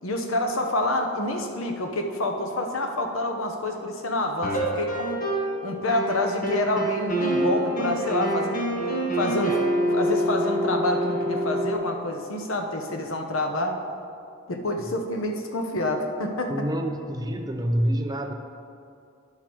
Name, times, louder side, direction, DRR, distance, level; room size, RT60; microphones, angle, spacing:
voice 1, 0.0-5.2 5.6-8.6 9.1-9.6 9.9-13.8 14.5-16.6, left 1 dB, 70° left, 4 dB, 0.9 m, -27 dB
sound 1, 4.4-5.6 5.9-11.8, right 1 dB, 40° left, 1.2 m, -26 dB
voice 2, 16.5-18.3, equal, 20° right, 5 dB, 0.4 m, -27 dB
10.5 x 5.8 x 4.5 m, 2.5 s
head